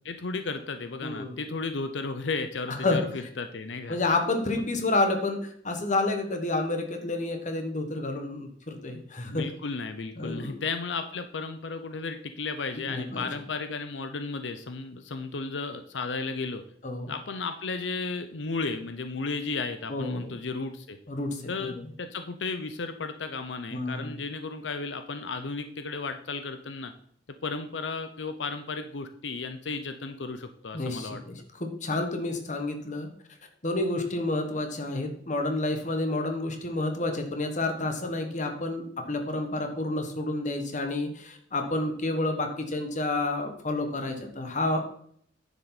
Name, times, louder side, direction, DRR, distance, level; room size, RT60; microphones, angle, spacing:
voice 1, 0.0-4.0 9.3-16.6 17.1-21.0 21.5-26.9 27.4-31.2, left 4 dB, 90° left, 8 dB, 0.7 m, -34 dB
voice 2, 1.0-1.4 2.8-3.0 3.9-9.5 10.2-10.6 12.9-13.3 16.8-17.1 19.9-20.3 21.1-21.4 21.7-21.8 23.7-24.1 30.7-33.1 33.6-44.9, left 2 dB, 45° left, 5 dB, 1.5 m, -29 dB
9.9 x 7.2 x 4.1 m, 0.64 s
head